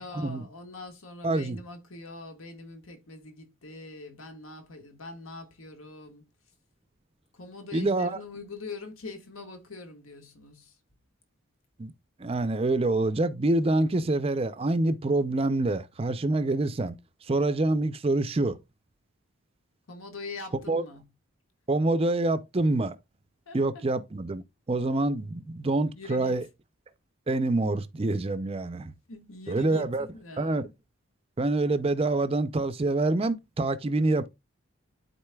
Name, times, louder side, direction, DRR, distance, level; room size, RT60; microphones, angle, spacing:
voice 1, 0.0-6.2 7.3-10.8 19.9-21.0 23.5-23.8 25.9-26.4 29.1-30.7, left 3 dB, 80° left, 1.6 m, -43 dB
voice 2, 1.2-1.6 7.7-8.2 11.8-11.9 12.2-16.9 17.3-18.6 20.7-20.8 21.7-23.0 23.5-24.4 24.7-26.4 27.3-28.9 29.5-30.1 30.4-30.7 31.4-34.3, right 2 dB, 25° right, 0.4 m, -26 dB
12.0 x 4.0 x 2.3 m
head